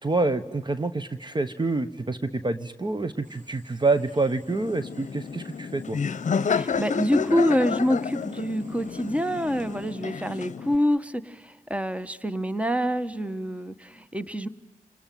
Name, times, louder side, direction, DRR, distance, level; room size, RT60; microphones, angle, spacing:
voice 1, 0.0-6.0, right 3 dB, 35° right, 10 dB, 1.2 m, -27 dB
sound 1, 3.2-9.9, right 1 dB, 70° right, 7.5 m, -58 dB
Laughter, 4.5-10.8, left 6 dB, 65° left, 0.8 m, -30 dB
voice 2, 6.4-14.5, equal, 10° right, 12 dB, 1.4 m, -26 dB
28.0 x 19.5 x 9.3 m, 1.2 s
cardioid pair, 45°, 14 cm